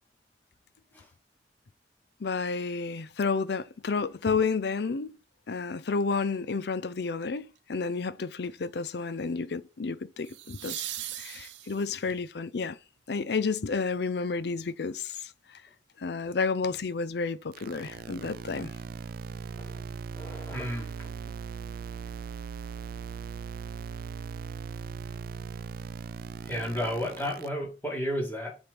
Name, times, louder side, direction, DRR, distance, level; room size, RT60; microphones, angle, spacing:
voice 1, 2.2-5.1 5.5-10.8 11.1-12.8 13.1-15.3 16.0-18.7, left 4 dB, 65° left, 0.5 m, -31 dB
sound 1, 7.2-7.6 10.2-12.1 15.0-15.1, right 13 dB, 85° right, 0.7 m, -39 dB
sound 2, 17.5-27.5, right 6 dB, 55° right, 0.3 m, -39 dB
voice 2, 20.1-21.1 26.4-28.6, equal, 10° left, 1.9 m, -33 dB
7.3 x 3.4 x 5.1 m
head